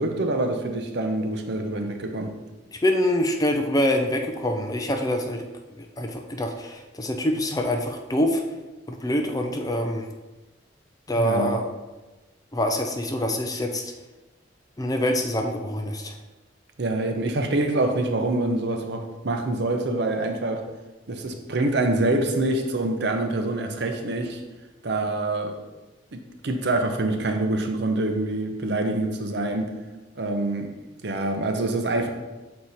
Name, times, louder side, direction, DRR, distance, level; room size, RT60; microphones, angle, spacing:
voice 1, 0.0-2.3 11.2-11.6 16.8-20.7 21.1-24.4 24.8-25.6 26.1-29.7 30.1-30.7 31.0-32.1, right 2 dB, 65° right, 5 dB, 0.7 m, -26 dB
voice 2, 2.7-5.4 5.8-8.4 8.9-10.1 11.1-11.6 12.5-13.9 14.8-16.1, left 1 dB, 20° left, 4 dB, 0.5 m, -25 dB
6.5 x 4.4 x 4.2 m, 1.1 s
head